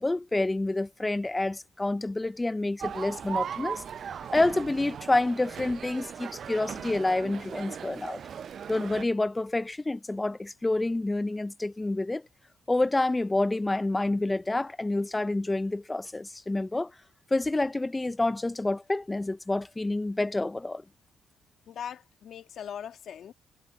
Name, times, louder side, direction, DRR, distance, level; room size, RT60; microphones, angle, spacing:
voice 1, 0.0-3.8 4.3-8.2 8.7-12.2 12.7-16.9 17.3-20.8, left 2 dB, 15° left, 0.4 m, -28 dB
sound 1, 2.8-9.0, right 8 dB, 55° right, 0.4 m, -38 dB
voice 2, 21.7-23.3, left 8 dB, 65° left, 1.9 m, -40 dB
cardioid pair, 90°, 0 cm